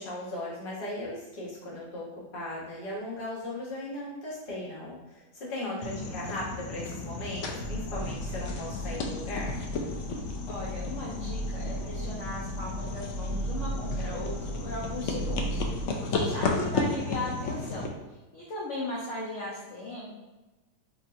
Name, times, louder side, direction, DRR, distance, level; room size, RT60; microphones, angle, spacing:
voice 1, 0.0-9.6, left 1 dB, 35° left, -6 dB, 1.1 m, -37 dB
voice 2, 5.6-6.2 10.5-17.9 18.3-20.1, left 2 dB, 55° left, -6 dB, 0.9 m, -37 dB
sound 1, 5.8-17.9, left 3 dB, 85° left, 0.6 m, -34 dB
sound 2, 7.6-15.8, right 1 dB, 75° right, 1.1 m, -36 dB
4.7 x 2.8 x 2.5 m, 1.1 s
omnidirectional pair, 1.8 m